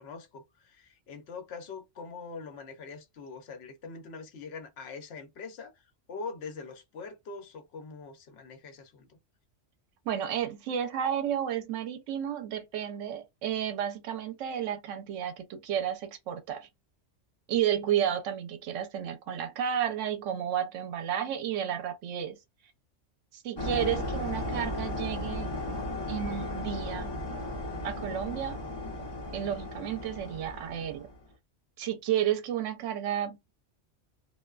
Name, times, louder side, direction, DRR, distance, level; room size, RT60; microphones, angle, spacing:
voice 1, 0.0-9.2, left 4 dB, 65° left, 0.9 m, -43 dB
voice 2, 10.1-16.7 17.5-22.4 23.3-25.5 26.1-27.1 27.8-28.6 29.3-31.1 31.8-33.4, right 10 dB, 80° right, 0.9 m, -32 dB
sound 1, 23.6-31.2, left 1 dB, 25° left, 0.7 m, -35 dB
2.5 x 2.2 x 2.3 m
omnidirectional pair, 1.3 m